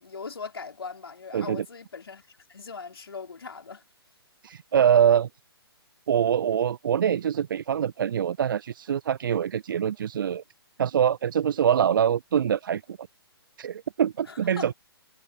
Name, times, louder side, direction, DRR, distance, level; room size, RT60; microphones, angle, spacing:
voice 1, 0.0-3.8 14.3-14.7, left 5 dB, 70° left, 4.7 m, -40 dB
voice 2, 1.3-1.6 4.4-5.3 6.1-10.4 10.8-13.0 13.6-14.7, right 9 dB, 55° right, 0.5 m, -24 dB
figure-of-eight pair, 125°, 13 cm